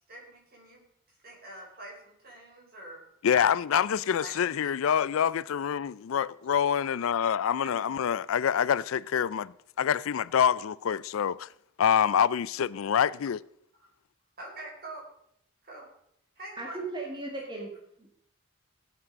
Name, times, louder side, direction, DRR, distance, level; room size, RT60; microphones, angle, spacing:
voice 1, 0.1-0.8 1.2-3.0 3.7-4.3 7.6-7.7 14.4-15.0 15.6-15.9 16.4-16.8, right 1 dB, 45° right, 5.0 m, -45 dB
voice 2, 3.2-11.5 11.8-13.4, left 8 dB, 75° left, 0.4 m, -26 dB
voice 3, 16.6-18.1, right 2 dB, 20° right, 1.8 m, -37 dB
16.0 x 8.6 x 5.2 m
head